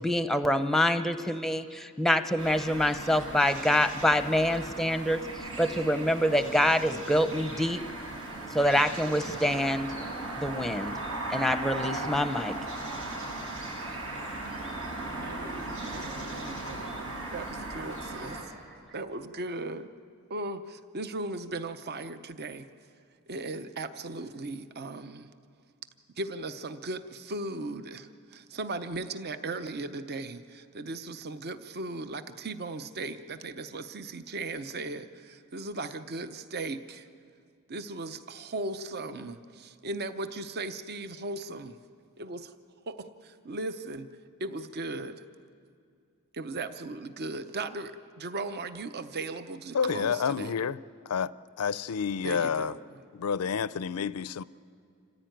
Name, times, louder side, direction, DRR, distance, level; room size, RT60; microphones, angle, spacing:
voice 1, 0.0-5.2 5.6-7.8 8.5-9.9 10.4-11.0 11.3-12.6, equal, ahead, 0.7 m, -26 dB
sound 1, 2.4-18.4, right 2 dB, 85° right, 6.0 m, -37 dB
voice 2, 15.2-18.5 18.9-19.9 20.3-22.7 23.3-25.3 26.2-37.1 37.7-41.8 42.2-42.5 42.9-44.1 44.4-45.2 46.3-50.6 52.2-52.8, right 2 dB, 45° right, 0.7 m, -37 dB
voice 3, 49.7-50.8 51.1-51.3 51.6-52.8 53.1-54.4, left 6 dB, 75° left, 0.5 m, -29 dB
27.0 x 15.0 x 9.1 m
head